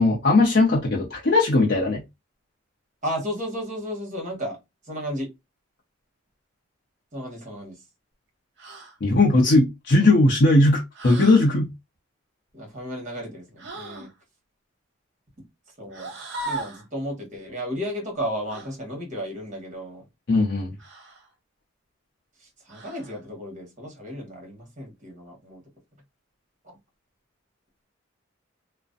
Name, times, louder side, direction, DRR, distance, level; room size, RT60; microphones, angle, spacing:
voice 1, 0.0-2.0 9.0-11.7 20.3-20.7, left 2 dB, 55° left, 0.6 m, -18 dB
voice 2, 3.0-4.6 4.8-5.3 7.1-7.8 12.5-14.1 15.8-16.1 16.4-20.0 22.4-25.6 26.6-26.8, equal, 35° right, 1.1 m, -33 dB
sound 1, 8.6-9.0 10.9-11.5 13.6-14.1 15.9-16.9 18.5-18.7 20.8-21.3 22.7-23.2, right 2 dB, 60° right, 0.7 m, -37 dB
2.4 x 2.1 x 2.4 m
head